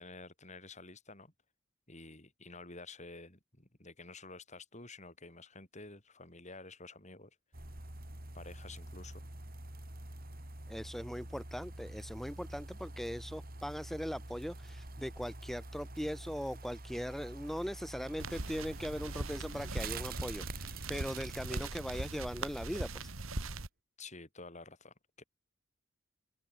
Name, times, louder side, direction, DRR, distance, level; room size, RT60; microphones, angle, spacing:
voice 1, 0.0-1.3 1.9-7.3 8.3-9.2 24.0-25.2, left 3 dB, 35° left, 5.8 m, -50 dB
sound 1, 7.5-23.2 23.6-23.7, right 2 dB, 45° right, 3.4 m, -47 dB
voice 2, 10.7-23.1, equal, ahead, 1.0 m, -40 dB
sound 2, 18.2-23.7, right 2 dB, 90° right, 2.6 m, -40 dB
open air
head